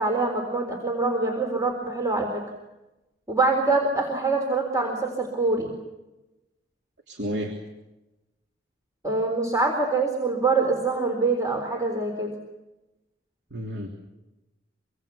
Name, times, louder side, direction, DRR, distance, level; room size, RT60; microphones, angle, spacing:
voice 1, 0.0-2.4 3.3-5.7 9.0-12.3, right 3 dB, 20° right, 2 dB, 4.0 m, -24 dB
voice 2, 7.1-7.6 13.5-13.9, equal, 65° right, 2 dB, 3.2 m, -31 dB
26.0 x 25.0 x 7.1 m, 1.0 s
head